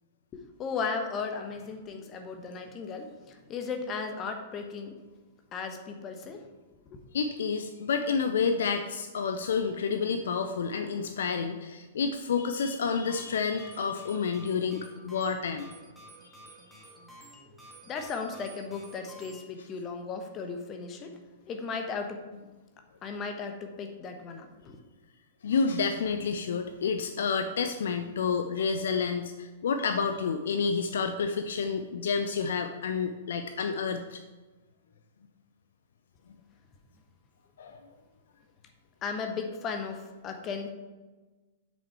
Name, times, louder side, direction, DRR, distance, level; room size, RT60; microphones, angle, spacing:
voice 1, 0.3-5.0 5.5-6.4 6.9-7.0 17.9-21.2 21.5-22.2 23.0-24.8 39.0-40.7, left 5 dB, 25° left, 5 dB, 1.1 m, -36 dB
voice 2, 7.1-15.7 25.4-34.2 37.6-37.8, left 5 dB, 60° left, 7 dB, 0.5 m, -29 dB
sound 1, 12.9-19.4, right 1 dB, ahead, 1.9 m, -52 dB
7.9 x 6.3 x 4.6 m, 1.2 s
figure-of-eight pair, 105°, 0 cm